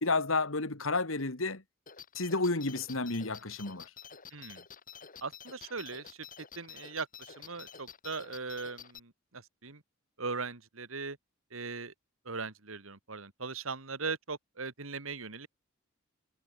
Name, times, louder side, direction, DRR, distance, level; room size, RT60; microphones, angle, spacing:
voice 1, 0.0-1.6 2.1-3.9, left 3 dB, 80° left, 2.5 m, -31 dB
sound 1, 1.9-9.0, left 7 dB, 45° left, 6.7 m, -50 dB
voice 2, 4.3-4.6 5.2-6.2 6.6-9.8 10.2-11.2 11.5-11.9 12.3-15.5, right 4 dB, 90° right, 2.3 m, -39 dB
head